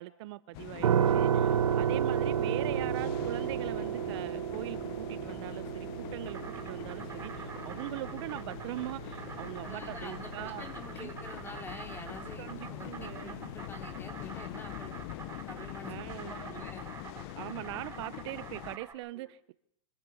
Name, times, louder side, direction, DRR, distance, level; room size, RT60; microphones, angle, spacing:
voice 1, 0.0-10.7 10.9-11.1 12.4-13.5 15.9-16.6 17.3-19.5, right 17 dB, 55° right, 0.7 m, -41 dB
sound 1, 0.5-18.8, left 18 dB, 45° left, 0.7 m, -44 dB
sound 2, 0.8-13.7, right 8 dB, 85° right, 1.2 m, -33 dB
Insect, 5.9-18.9, right 5 dB, 15° right, 3.2 m, -47 dB
voice 2, 9.6-15.0 15.5-15.9 16.3-16.9 19.2-19.3, left 2 dB, 10° left, 3.2 m, -47 dB
25.0 x 15.0 x 6.9 m
hypercardioid pair, 125°, 17 cm